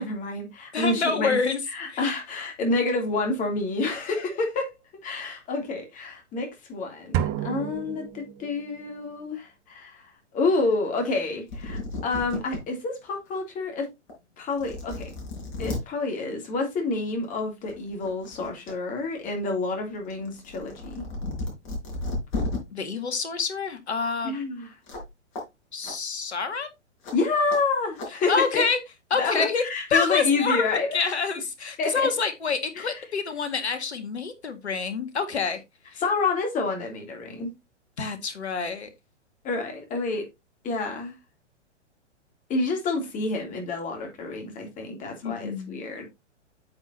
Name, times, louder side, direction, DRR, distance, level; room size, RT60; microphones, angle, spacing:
voice 1, 0.0-1.4 1.7-4.7 5.0-10.1 10.3-13.9 14.4-15.0 15.6-21.0 24.2-24.7 27.1-28.6 29.2-31.1 31.8-32.1 32.7-32.9 36.0-37.5 39.4-40.3 40.6-41.1 42.5-46.1, left 3 dB, 20° left, 3.0 m, -28 dB
voice 2, 0.7-1.6 1.9-2.1 22.7-24.4 25.7-26.7 28.3-28.8 29.1-29.6 29.9-30.6 30.9-35.6 35.9-36.0 38.0-38.9 45.2-45.8, left 5 dB, 65° left, 2.0 m, -27 dB
sound 1, 7.1-8.8, right 10 dB, 25° right, 0.7 m, -30 dB
sound 2, 11.5-12.6 13.1-13.2 14.1-14.2 14.5-15.8 17.1-17.3 17.7-18.7 19.1-22.6 24.9-25.1 25.3-25.4 25.8-25.9 27.0-27.1 27.5-27.6 28.0-28.1, left 2 dB, 40° left, 5.0 m, -34 dB
8.8 x 7.9 x 2.8 m
figure-of-eight pair, 110°, 35 cm